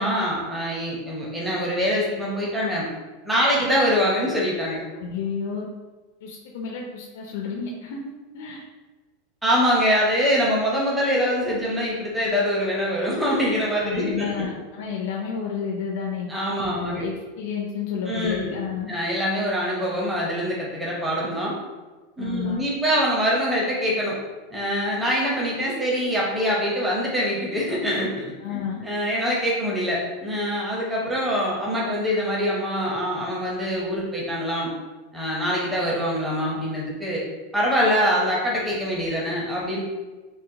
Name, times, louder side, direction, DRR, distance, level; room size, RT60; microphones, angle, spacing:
voice 1, 0.0-2.9 3.2-4.8 9.4-14.5 16.3-17.1 18.1-18.5 18.9-21.5 22.2-24.2 24.5-28.2 28.5-34.7 35.1-37.2 37.5-39.8, equal, 5° right, -5 dB, 0.6 m, -24 dB
voice 2, 5.0-5.7 6.2-8.0 8.3-8.6 13.8-16.3 16.6-18.9 22.2-22.6 28.4-28.8, left 6 dB, 70° left, -1 dB, 0.4 m, -31 dB
3.9 x 2.1 x 2.7 m, 1.2 s
supercardioid pair, 160°, 0 cm